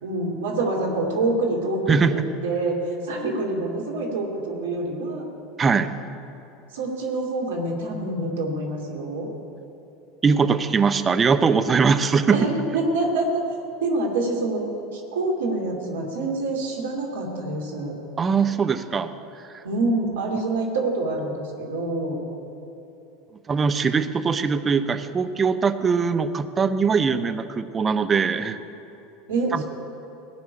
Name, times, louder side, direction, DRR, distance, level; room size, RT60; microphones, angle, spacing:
voice 1, 0.0-5.2 6.7-9.3 12.3-13.4 13.8-14.6 14.9-17.9 19.6-22.2 29.3-29.6, right 2 dB, 70° right, 0 dB, 2.6 m, -26 dB
voice 2, 5.6-5.9 10.2-12.4 18.2-19.1 19.5-19.6 23.5-28.6 29.5-29.6, right 5 dB, 25° right, 10 dB, 0.8 m, -21 dB
17.5 x 6.1 x 9.9 m, 3.0 s
hypercardioid pair, 80°, 0 cm